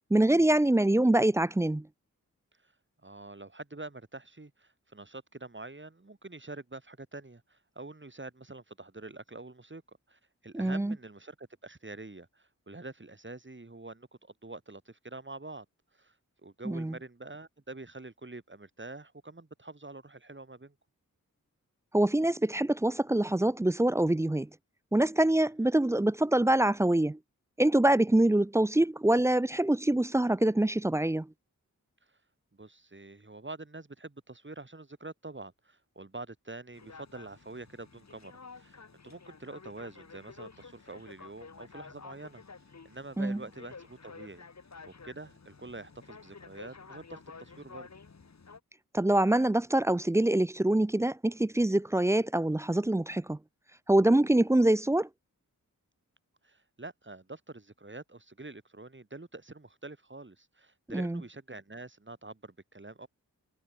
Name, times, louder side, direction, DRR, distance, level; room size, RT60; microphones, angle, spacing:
voice 1, 0.1-1.9 10.5-10.9 16.7-16.9 21.9-24.5 24.9-27.2 27.6-31.3 43.2-43.4 48.9-53.4 53.9-55.1 60.9-61.2, right 1 dB, 10° right, 0.4 m, -25 dB
voice 2, 3.0-9.8 10.1-15.7 15.9-16.2 16.4-20.7 32.1-32.2 32.5-42.4 42.8-44.5 44.8-47.9 54.6-54.7 56.4-63.1, right 2 dB, 35° right, 7.2 m, -46 dB
sound 1, 36.7-48.6, left 4 dB, 55° left, 2.6 m, -51 dB
cardioid pair, 50°, 33 cm